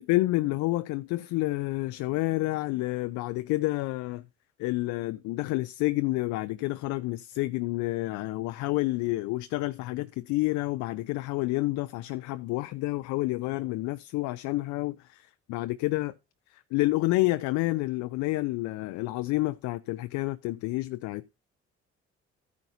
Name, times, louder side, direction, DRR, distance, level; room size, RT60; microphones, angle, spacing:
voice 1, 0.0-4.2 4.6-16.1 16.5-21.4, left 19 dB, 60° left, 0.5 m, -29 dB
13.5 x 9.4 x 2.7 m
hypercardioid pair, 50°, 32 cm